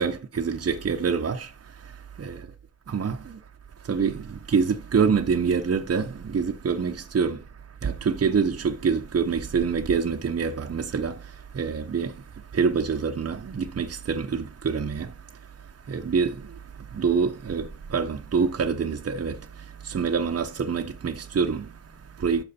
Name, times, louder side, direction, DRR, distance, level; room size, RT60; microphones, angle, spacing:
voice 1, 0.0-2.5 2.9-3.4 3.8-22.4, right 6 dB, 40° right, 0.8 m, -27 dB
11.5 x 6.3 x 4.2 m
wide cardioid pair, 145°, 36 cm